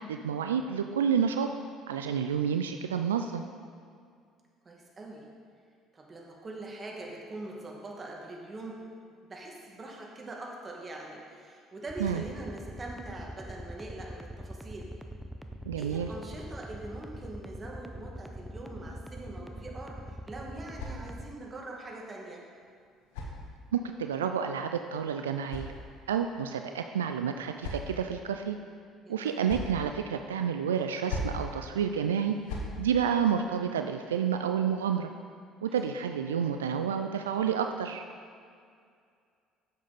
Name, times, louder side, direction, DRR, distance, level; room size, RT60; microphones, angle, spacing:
voice 1, 0.0-1.5 1.9-3.4 12.0-12.2 15.7-16.1 23.7-25.7 26.1-28.6 29.1-32.4 32.8-35.1 35.6-38.0, right 7 dB, 90° right, 6 dB, 0.3 m, -29 dB
voice 2, 4.6-5.3 5.9-8.9 9.2-14.9 15.8-22.5 29.0-29.5 35.7-35.9, right 2 dB, 30° right, -1 dB, 2.0 m, -43 dB
sound 1, 11.9-21.3, equal, 5° right, 0.8 m, -42 dB
sound 2, 19.9-21.5 22.5-24.0 25.0-26.3 27.1-28.2 29.1-29.8 30.8-31.5 32.2-32.8, left 2 dB, 80° left, 1.3 m, -41 dB
10.5 x 7.5 x 4.1 m, 2.2 s
hypercardioid pair, 60°, 0 cm